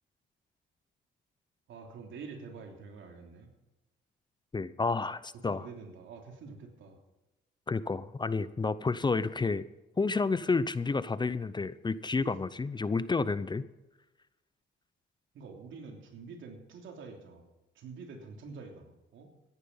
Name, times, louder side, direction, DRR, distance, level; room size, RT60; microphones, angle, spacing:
voice 1, 1.7-3.5 5.4-7.0 12.2-12.3 15.3-17.4 17.7-19.3, right 4 dB, 75° right, 3 dB, 3.2 m, -47 dB
voice 2, 4.5-5.7 7.7-9.6 10.0-13.6, left 4 dB, 20° left, 16 dB, 0.6 m, -30 dB
14.5 x 10.5 x 5.5 m, 1.0 s
cardioid pair, 90°, 20 cm